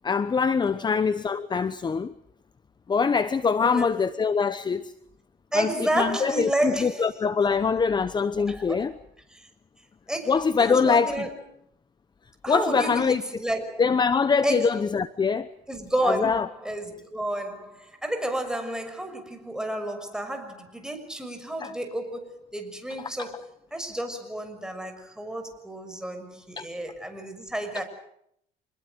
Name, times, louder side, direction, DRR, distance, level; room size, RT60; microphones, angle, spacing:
voice 1, 0.0-2.1 2.9-4.9 5.5-8.9 10.3-11.2 12.5-13.2 13.8-15.5 16.0-16.5 21.6-21.7 23.2-23.3 26.6-26.7 27.7-27.8, left 5 dB, 25° left, 0.9 m, -24 dB
voice 2, 3.6-3.9 5.5-7.1 8.5-9.0 9.3-9.5 10.1-11.3 12.4-13.8 14.4-14.8 15.7-27.8, right 1 dB, 5° right, 6.2 m, -31 dB
27.0 x 21.0 x 7.9 m
cardioid pair, 110°, 17 cm